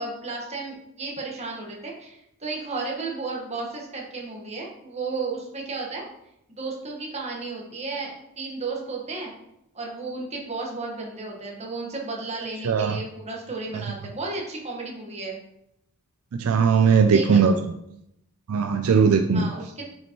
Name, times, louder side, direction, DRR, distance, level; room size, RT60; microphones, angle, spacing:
voice 1, 0.0-6.0 6.5-9.3 9.7-15.4 17.0-17.6 19.3-19.8, right 3 dB, 30° right, -1 dB, 1.4 m, -33 dB
voice 2, 12.6-13.0 16.3-17.5 18.5-19.5, right 6 dB, 70° right, 7 dB, 0.4 m, -19 dB
7.3 x 5.3 x 3.0 m, 0.81 s
head